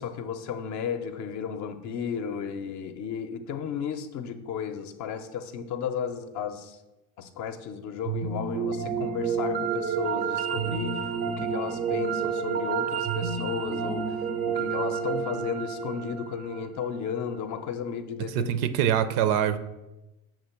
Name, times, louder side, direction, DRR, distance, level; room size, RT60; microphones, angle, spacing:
voice 1, 0.0-6.8 7.2-10.9 11.3-18.5, left 7 dB, 45° left, 9 dB, 0.6 m, -34 dB
sound 1, 8.0-17.2, right 6 dB, 25° right, 0.4 m, -30 dB
voice 2, 18.3-19.6, right 10 dB, 60° right, 12 dB, 0.6 m, -24 dB
7.0 x 2.9 x 5.8 m, 0.99 s
supercardioid pair, 120°, 41 cm